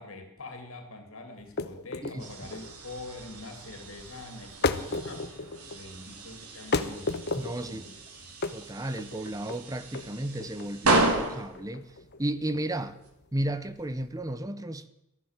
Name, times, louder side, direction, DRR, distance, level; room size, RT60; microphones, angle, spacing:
voice 1, 0.0-5.3 5.7-7.2 7.7-8.0 8.2-8.3, left 2 dB, 65° left, 2.8 m, -44 dB
sound 1, 1.4-14.3, left 3 dB, 50° left, 1.0 m, -35 dB
sound 2, 2.2-13.1, right 2 dB, 90° right, 2.9 m, -33 dB
voice 2, 7.4-7.8 8.5-13.0 13.3-14.9, right 1 dB, 15° right, 0.7 m, -33 dB
15.0 x 11.0 x 7.3 m
head